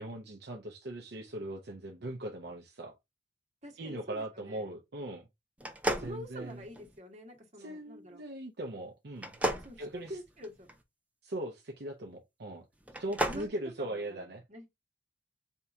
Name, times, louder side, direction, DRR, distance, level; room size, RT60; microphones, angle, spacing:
voice 1, 0.0-3.0 3.8-5.3 6.0-6.6 7.6-9.5 9.8-10.2 11.2-12.6 13.0-14.4, right 1 dB, 60° right, 0.7 m, -40 dB
voice 2, 3.6-4.6 6.0-8.2 9.6-10.7 13.1-13.5 13.8-14.7, equal, 40° right, 1.5 m, -46 dB
sound 1, 5.6-7.0 9.2-10.7 12.8-13.5, equal, 10° right, 0.7 m, -34 dB
4.5 x 2.9 x 3.5 m
head